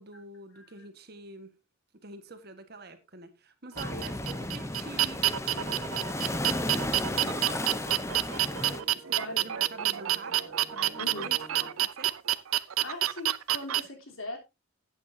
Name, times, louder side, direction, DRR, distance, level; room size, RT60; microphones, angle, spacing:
voice 1, 0.0-1.5 2.0-6.0 6.3-10.4 10.7-12.2 13.8-13.9, right 2 dB, 50° right, 1.5 m, -47 dB
sound 1, 3.8-8.8, left 1 dB, 15° left, 0.6 m, -34 dB
sound 2, 3.8-13.8, right 13 dB, 80° right, 0.6 m, -28 dB
sound 3, 6.4-11.7, right 3 dB, 5° right, 2.6 m, -48 dB
voice 2, 11.0-11.3 12.8-14.4, left 2 dB, 75° left, 3.4 m, -40 dB
13.5 x 8.7 x 2.7 m
head